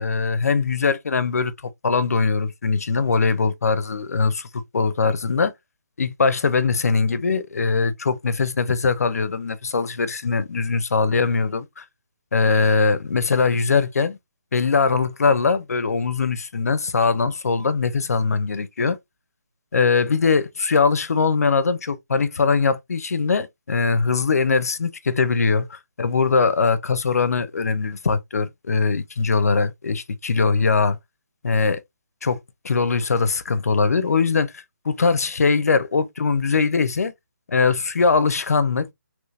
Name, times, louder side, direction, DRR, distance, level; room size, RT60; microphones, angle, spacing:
voice 1, 0.0-1.5 1.8-5.5 6.0-11.8 12.3-14.2 14.5-19.0 19.7-31.0 31.4-31.8 32.2-32.4 32.6-37.1 37.5-38.9, left 4 dB, 60° left, 0.6 m, -21 dB
3.2 x 3.1 x 2.4 m
hypercardioid pair, 180°, 9 cm